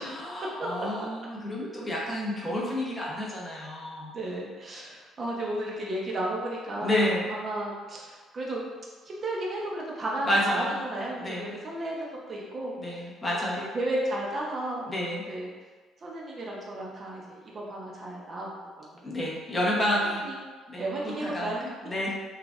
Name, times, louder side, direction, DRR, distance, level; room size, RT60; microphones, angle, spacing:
voice 1, 0.1-4.1 6.8-7.3 10.3-10.7 11.1-11.5 12.7-13.7 14.9-15.2 19.0-20.2 20.7-21.5 21.8-22.1, left 1 dB, 15° left, -5 dB, 0.9 m, -30 dB
voice 2, 4.1-8.6 9.1-12.8 13.4-14.9 15.3-15.5 16.0-18.5 18.8-19.0 19.7-19.8 20.2-20.4 20.7-21.6, right 1 dB, 30° right, -3 dB, 0.7 m, -33 dB
5.9 x 2.4 x 2.4 m, 1.4 s
cardioid pair, 160°, 0 cm